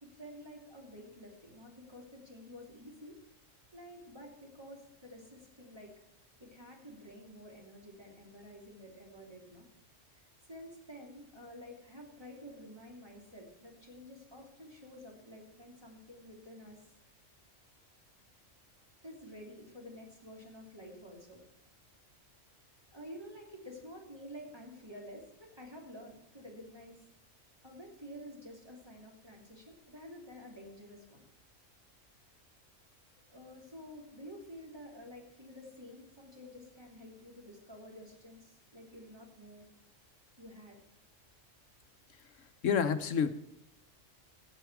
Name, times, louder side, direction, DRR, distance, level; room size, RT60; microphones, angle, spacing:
voice 1, 0.0-3.2 3.7-5.9 6.4-9.6 10.1-16.8 19.0-21.4 22.9-27.0 27.6-31.2 33.3-39.7 40.4-40.8, equal, 20° right, -1 dB, 3.1 m, -50 dB
voice 2, 42.4-43.3, left 7 dB, 75° left, 10 dB, 1.2 m, -29 dB
15.0 x 8.5 x 4.7 m, 0.86 s
omnidirectional pair, 1.3 m